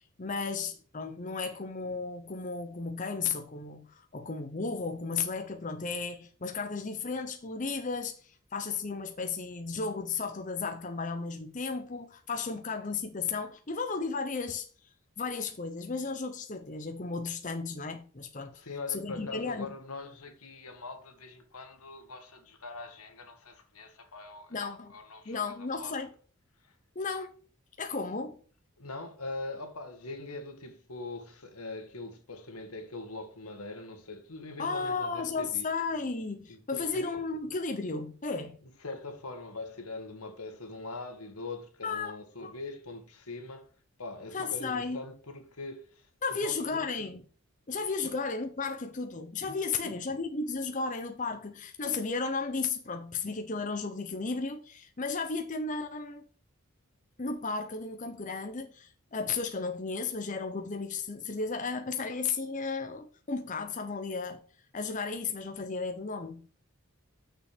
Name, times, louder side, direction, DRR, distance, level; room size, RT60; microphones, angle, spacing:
voice 1, 0.2-14.7 15.2-18.5 18.9-19.7 24.5-24.9 25.3-26.1 26.9-27.3 27.8-28.4 34.6-38.6 41.8-42.1 42.4-42.5 44.3-45.0 46.2-47.2 47.7-56.3 57.2-64.4 64.7-66.5, left 4 dB, 35° left, 0.8 m, -34 dB
voice 2, 18.5-26.0 26.6-26.8 28.8-35.7 36.5-37.1 38.8-43.7 44.0-46.8 48.0-48.1 49.8-50.2, left 3 dB, 85° left, 1.7 m, -42 dB
6.6 x 6.0 x 5.0 m
head